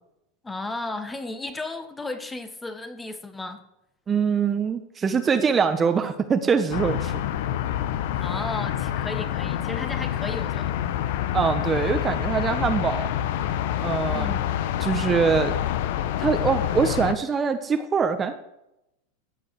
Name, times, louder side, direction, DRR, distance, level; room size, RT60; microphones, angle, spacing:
voice 1, 0.4-3.6 8.2-10.7 14.1-14.5, left 2 dB, 10° left, 9 dB, 1.5 m, -34 dB
voice 2, 4.1-7.1 11.3-13.1 13.8-14.3 14.8-15.6 16.2-18.3, right 6 dB, 25° right, 8 dB, 1.1 m, -23 dB
sound 1, 6.7-17.1, left 11 dB, 70° left, 0.9 m, -27 dB
15.5 x 5.5 x 8.0 m, 0.84 s
hypercardioid pair, 110°, 0 cm